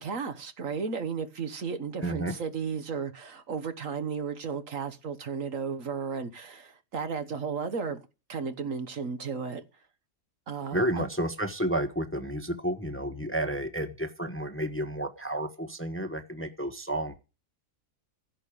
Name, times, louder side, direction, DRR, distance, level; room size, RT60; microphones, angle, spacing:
voice 1, 0.0-8.0 8.3-9.6 10.5-11.0, right 6 dB, 60° right, 1.6 m, -34 dB
voice 2, 2.0-2.3 10.7-17.2, right 1 dB, 10° left, 1.1 m, -31 dB
15.5 x 5.9 x 8.7 m
omnidirectional pair, 1.6 m